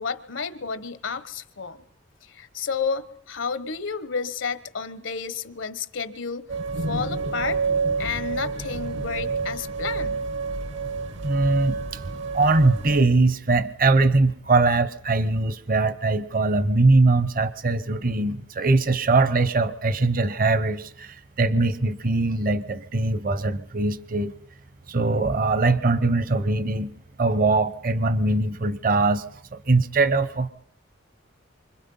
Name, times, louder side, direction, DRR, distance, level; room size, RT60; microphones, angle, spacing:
voice 1, 0.0-1.8 2.3-6.5 6.9-7.6 8.0-10.2, left 5 dB, 80° left, 13 dB, 1.2 m, -31 dB
sound 1, 6.5-13.0, right 4 dB, 70° right, 1.2 m, -28 dB
voice 2, 11.2-12.0 12.3-24.3 24.9-29.2 29.5-30.5, right 3 dB, 45° right, 14 dB, 0.9 m, -22 dB
28.5 x 25.5 x 5.6 m, 0.68 s
head